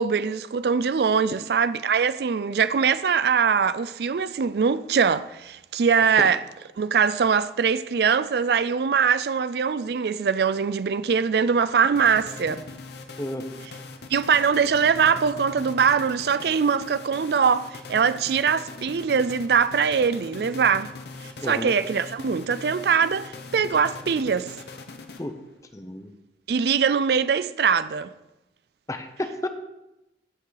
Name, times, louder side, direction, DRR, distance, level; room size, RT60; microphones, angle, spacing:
voice 1, 0.0-6.4 6.8-12.6 14.1-20.9 21.5-24.5 26.5-28.1, right 6 dB, 65° right, 0.4 m, -22 dB
sound 1, 12.0-25.6, left 3 dB, 70° left, 0.9 m, -41 dB
voice 2, 21.4-21.7 25.2-25.3 25.7-26.1 28.9-29.5, left 1 dB, 20° left, 0.6 m, -31 dB
15.0 x 5.4 x 4.0 m
head